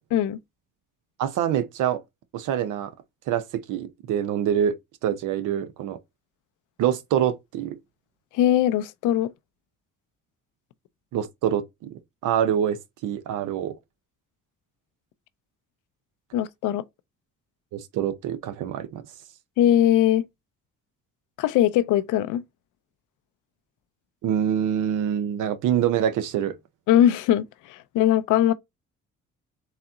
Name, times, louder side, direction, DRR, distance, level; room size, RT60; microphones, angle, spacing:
voice 1, 1.2-2.0 2.3-2.9 3.3-4.7 5.0-6.0 6.8-7.8 11.1-12.8 13.0-13.7 17.7-19.0 24.2-26.5, right 9 dB, 85° right, 0.7 m, -25 dB
voice 2, 8.3-9.3 16.3-16.8 19.6-20.2 21.4-22.4 26.9-28.5, left 11 dB, 90° left, 0.5 m, -20 dB
4.0 x 2.8 x 3.6 m
cardioid pair, 90°, 30 cm